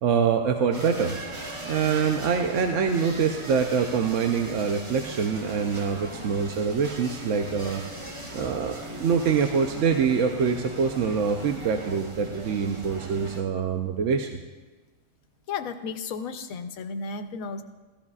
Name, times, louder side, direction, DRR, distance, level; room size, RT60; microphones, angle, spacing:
voice 1, 0.0-1.1 1.7-7.8 8.3-14.4, right 6 dB, 65° right, 4 dB, 1.0 m, -25 dB
sound 1, 0.7-13.4, right 1 dB, 25° right, 0.8 m, -39 dB
voice 2, 15.5-17.6, left 5 dB, 85° left, 8 dB, 1.1 m, -33 dB
15.5 x 13.5 x 2.4 m, 1.2 s
omnidirectional pair, 1.4 m